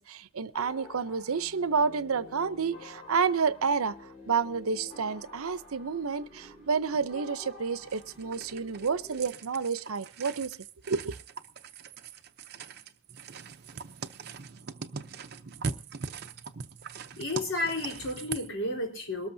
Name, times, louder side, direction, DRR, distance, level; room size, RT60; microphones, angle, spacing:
voice 1, 0.0-10.6 10.9-11.2, right 5 dB, 85° right, 0.7 m, -30 dB
sound 1, 0.5-9.3, left 3 dB, 30° left, 7.3 m, -49 dB
sound 2, 7.8-18.5, right 5 dB, 50° right, 0.7 m, -41 dB
voice 2, 17.2-19.3, left 2 dB, 65° left, 4.1 m, -32 dB
22.0 x 13.5 x 2.7 m
head